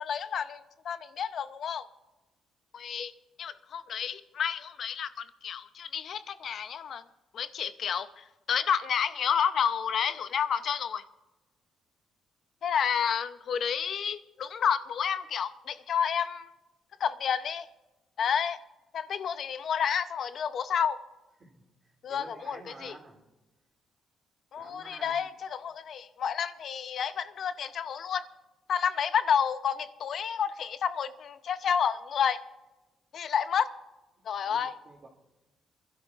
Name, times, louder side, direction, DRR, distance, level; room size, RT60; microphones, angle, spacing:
voice 1, 0.0-1.9 2.7-3.1 3.4-7.0 7.3-11.0 12.6-16.5 17.0-17.6 18.2-18.6 18.9-21.0 22.0-22.9 24.5-28.2 28.7-32.4 33.1-33.7 34.3-34.7, left 7 dB, 60° left, 12 dB, 0.7 m, -30 dB
voice 2, 22.1-23.2 24.6-25.3 34.4-35.1, right 3 dB, 40° right, -2 dB, 3.2 m, -50 dB
27.0 x 12.0 x 2.5 m, 1.1 s
cardioid pair, 90°, 0 cm